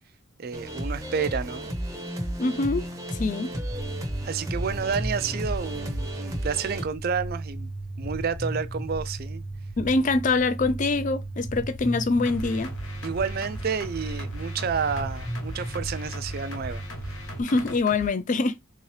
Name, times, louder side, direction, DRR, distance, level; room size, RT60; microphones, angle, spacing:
voice 1, 0.4-1.7 4.2-7.7 8.0-9.4 13.0-16.8, right 6 dB, 45° right, 0.4 m, -30 dB
sound 1, 0.5-6.8, right 1 dB, 15° right, 0.7 m, -33 dB
voice 2, 2.4-2.8 3.1-3.5 9.8-12.7 17.4-18.6, left 3 dB, 35° left, 0.3 m, -24 dB
sound 2, 3.7-17.4, right 1 dB, 20° left, 0.9 m, -35 dB
sound 3, 12.2-18.1, left 1 dB, 60° left, 1.0 m, -40 dB
3.6 x 2.8 x 3.2 m
head